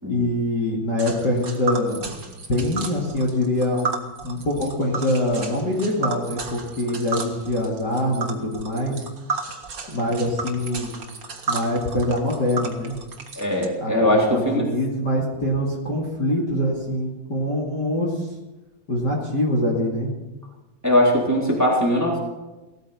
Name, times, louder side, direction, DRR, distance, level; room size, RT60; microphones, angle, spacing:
voice 1, 0.0-2.2 2.5-3.9 4.2-9.0 9.9-11.0 11.5-13.0 13.8-18.3 18.9-20.1, left 1 dB, 30° left, -3 dB, 2.8 m, -24 dB
Tick, 1.0-13.6, right 4 dB, 45° right, 1.2 m, -33 dB
voice 2, 13.3-14.7 20.8-22.2, equal, 5° right, -3 dB, 3.2 m, -20 dB
18.0 x 13.5 x 5.8 m, 1.1 s
omnidirectional pair, 4.0 m